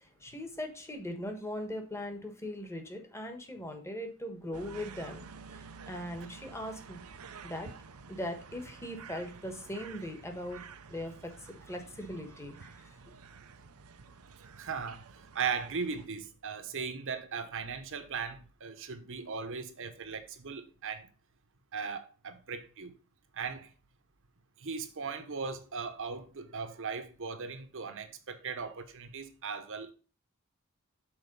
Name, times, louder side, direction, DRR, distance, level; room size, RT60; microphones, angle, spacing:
voice 1, 0.0-5.3 5.5-7.0 7.4-7.7 8.1-10.6 10.9-12.9, left 1 dB, 10° left, 1.2 m, -40 dB
sound 1, 4.5-16.1, right 5 dB, 90° right, 0.7 m, -50 dB
voice 2, 14.6-21.1 21.7-22.9 23.3-23.7 24.6-29.9, right 5 dB, 60° right, 1.0 m, -38 dB
6.4 x 4.3 x 5.3 m
head